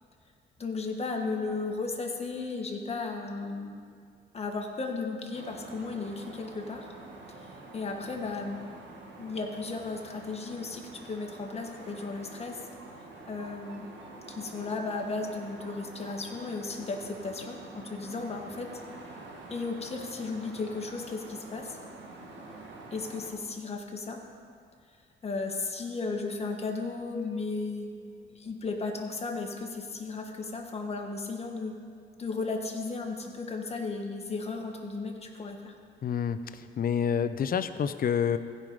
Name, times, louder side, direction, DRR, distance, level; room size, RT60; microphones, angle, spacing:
voice 1, 0.6-3.8 4.3-6.9 7.3-8.6 9.2-12.6 13.3-18.7 19.5-21.8 22.9-24.2 25.2-31.7 32.2-35.7, left 3 dB, 30° left, 2 dB, 1.4 m, -35 dB
sound 1, 5.3-23.3, right 2 dB, 70° right, 1.8 m, -47 dB
voice 2, 36.0-36.4 36.8-38.4, left 7 dB, 45° left, 11 dB, 0.6 m, -27 dB
15.5 x 5.4 x 5.1 m, 2.1 s
cardioid pair, 90°, 20 cm